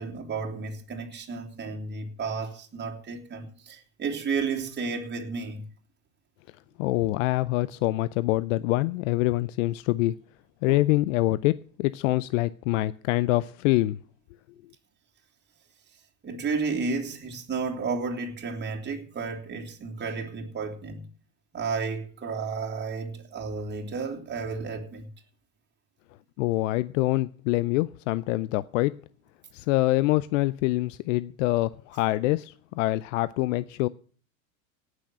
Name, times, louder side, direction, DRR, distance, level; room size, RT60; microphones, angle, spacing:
voice 1, 0.0-5.7 10.7-10.8 16.2-21.1 21.5-25.1, right 4 dB, 25° right, 3.0 m, -32 dB
voice 2, 6.8-10.2 10.6-14.0 26.4-28.9 29.5-33.9, left 18 dB, 65° left, 0.6 m, -25 dB
17.5 x 6.4 x 7.5 m
hypercardioid pair, 90°, 42 cm